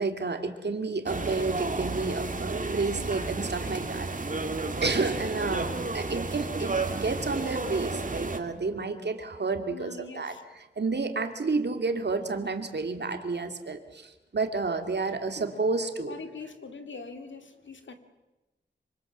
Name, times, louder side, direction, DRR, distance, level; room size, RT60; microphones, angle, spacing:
voice 1, 0.0-4.1 4.8-16.2, right 3 dB, 65° right, 6 dB, 2.4 m, -30 dB
sound 1, 1.1-8.4, right 3 dB, 45° right, 2.4 m, -32 dB
voice 2, 9.7-10.4 16.1-17.9, left 4 dB, 85° left, 7 dB, 2.4 m, -42 dB
25.5 x 25.0 x 7.4 m, 1.0 s
wide cardioid pair, 70°, 19 cm